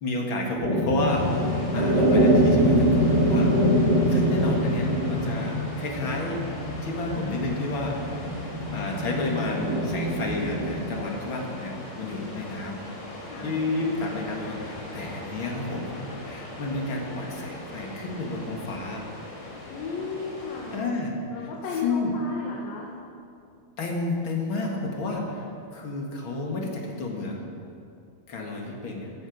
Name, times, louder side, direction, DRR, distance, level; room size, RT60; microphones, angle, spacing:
voice 1, 0.0-3.8 4.1-6.4 6.8-8.2 8.7-12.9 13.4-19.1 20.7-21.1 21.8-22.2 23.8-25.5 25.7-27.5 28.3-29.1, left 2 dB, 45° left, 0 dB, 1.8 m, -31 dB
sound 1, 0.6-10.8, equal, 65° right, 3.9 m, -24 dB
sound 2, 1.1-20.8, left 1 dB, 30° left, 3.6 m, -40 dB
voice 2, 13.3-13.6 19.6-20.8 21.3-22.9, left 4 dB, 70° left, -2 dB, 3.1 m, -34 dB
16.5 x 12.5 x 5.3 m, 2.6 s
omnidirectional pair, 4.5 m